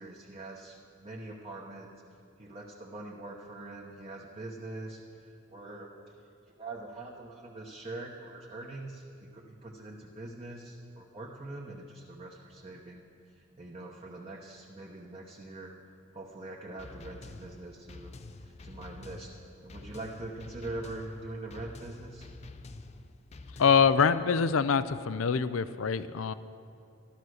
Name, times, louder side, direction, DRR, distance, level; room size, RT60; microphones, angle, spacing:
voice 1, 0.0-1.9 2.4-5.9 6.5-15.7 16.1-19.3 19.6-22.3, right 2 dB, 30° right, -1 dB, 1.0 m, -43 dB
sound 1, 16.8-24.0, left 3 dB, 35° left, 0.5 m, -48 dB
voice 2, 23.6-26.3, left 6 dB, 85° left, 14 dB, 0.5 m, -25 dB
13.0 x 12.0 x 6.4 m, 2.5 s
head